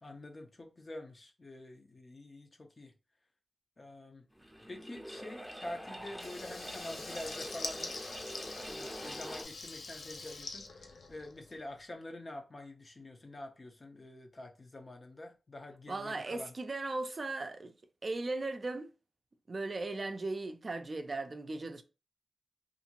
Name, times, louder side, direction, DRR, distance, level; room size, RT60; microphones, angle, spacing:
voice 1, 0.0-2.9 3.8-4.3 4.7-8.0 8.7-16.5, left 1 dB, 40° left, 0.7 m, -47 dB
sound 1, 4.3-9.4, equal, ahead, 0.7 m, -45 dB
Water tap faucet / Liquid, 6.1-11.6, left 3 dB, 85° left, 0.4 m, -44 dB
voice 2, 15.9-17.7 18.0-18.9 19.5-21.8, right 2 dB, 45° right, 0.4 m, -37 dB
2.7 x 2.5 x 2.9 m
wide cardioid pair, 85°, 0 cm